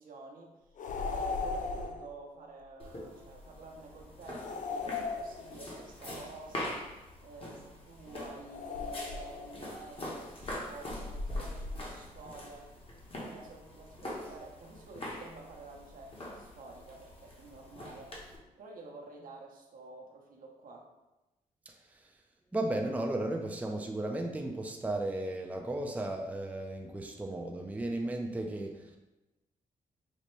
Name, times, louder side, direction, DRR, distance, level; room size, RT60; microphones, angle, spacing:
voice 1, 0.0-12.7 13.2-18.2 18.6-20.9, right 3 dB, 65° right, -1 dB, 0.8 m, -50 dB
sound 1, 0.8-2.1 4.4-5.8 8.5-9.6, left 4 dB, 60° left, 0.4 m, -37 dB
sound 2, 2.8-18.4, left 1 dB, 40° left, 1.0 m, -43 dB
voice 2, 21.7-22.1 22.5-29.0, right 1 dB, 10° right, 2 dB, 0.4 m, -35 dB
5.2 x 2.1 x 3.1 m, 1.0 s
cardioid pair, 75°, 15 cm